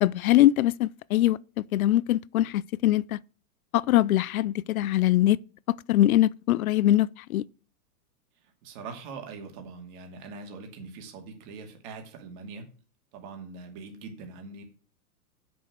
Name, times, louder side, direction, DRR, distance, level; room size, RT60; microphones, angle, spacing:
voice 1, 0.0-3.2 3.7-5.4 5.9-7.4, left 14 dB, 65° left, 0.5 m, -22 dB
voice 2, 8.6-12.7 13.1-14.6, right 4 dB, 35° right, 2.4 m, -42 dB
8.2 x 6.2 x 6.0 m
hypercardioid pair, 155°, 46 cm